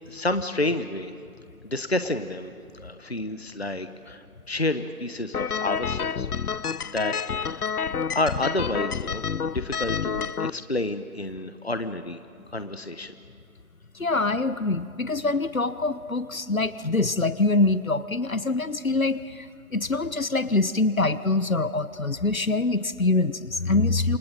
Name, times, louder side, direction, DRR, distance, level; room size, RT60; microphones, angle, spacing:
voice 1, 0.1-1.1 1.6-6.3 6.8-7.1 7.4-7.7 8.1-12.2 12.5-13.1, left 2 dB, 45° left, 10 dB, 1.1 m, -30 dB
sound 1, 5.3-10.5, left 6 dB, 85° left, 0.7 m, -29 dB
voice 2, 13.9-19.5 19.7-24.2, left 3 dB, 65° left, 14 dB, 1.2 m, -24 dB
28.0 x 20.5 x 9.0 m, 2.3 s
figure-of-eight pair, 180°, 44 cm